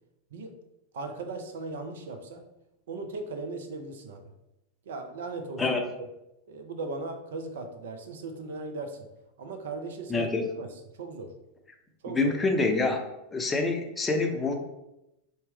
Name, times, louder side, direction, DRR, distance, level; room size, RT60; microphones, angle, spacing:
voice 1, 0.9-2.5 2.9-4.3 4.9-5.6 6.0-6.1 6.5-9.1 9.4-10.2 10.6-11.3 12.0-12.3, right 3 dB, 65° right, 6 dB, 0.5 m, -38 dB
voice 2, 10.1-10.5 12.1-13.0 13.3-14.5, left 3 dB, 15° left, 3 dB, 0.5 m, -26 dB
4.2 x 2.1 x 3.4 m, 0.90 s
figure-of-eight pair, 90°, 0 cm